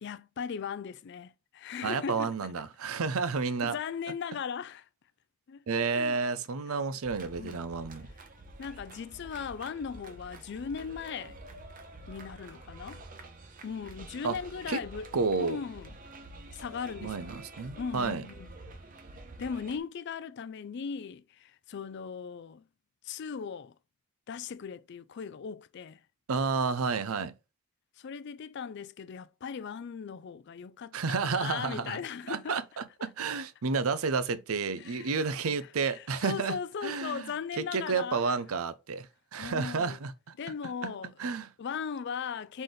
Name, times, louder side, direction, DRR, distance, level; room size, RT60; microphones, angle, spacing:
voice 1, 0.0-2.3 3.6-4.9 5.5-5.6 5.9-6.2 7.4-7.6 8.6-11.4 12.1-13.0 13.6-15.1 15.4-15.9 16.5-17.3 17.8-18.5 19.4-22.7 23.0-23.7 24.3-26.0 28.0-32.6 33.0-33.1 34.8-35.2 35.9-38.3 39.4-40.0 40.4-41.1 41.6-42.6, left 6 dB, 55° left, 0.4 m, -38 dB
voice 2, 1.8-3.8 5.7-8.1 14.2-14.4 14.7-14.8 15.1-15.6 17.0-18.2 26.3-27.3 30.9-32.0 32.3-39.1 39.3-40.1 40.8-40.9 41.2-41.5, right 4 dB, 90° right, 0.6 m, -31 dB
sound 1, 7.0-19.8, right 2 dB, 40° right, 0.8 m, -48 dB
4.0 x 3.9 x 3.2 m
head